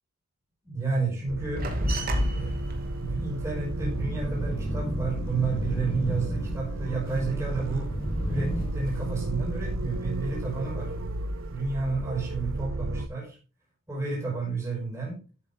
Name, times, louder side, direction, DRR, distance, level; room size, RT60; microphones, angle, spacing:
voice 1, 0.6-1.7 2.2-2.5 2.9-7.9 8.3-10.9 11.5-13.4 13.9-15.2, right 4 dB, 15° right, -3 dB, 5.3 m, -31 dB
sound 1, 1.3-13.1, right 2 dB, 70° right, 0.9 m, -33 dB
sound 2, 1.5-6.5 6.8-8.2 8.5-9.3 9.6-11.0 11.4-12.1, equal, 45° right, 2.5 m, -34 dB
sound 3, 2.0-8.7, equal, 25° left, 1.3 m, -34 dB
13.0 x 8.3 x 3.8 m, 0.35 s
head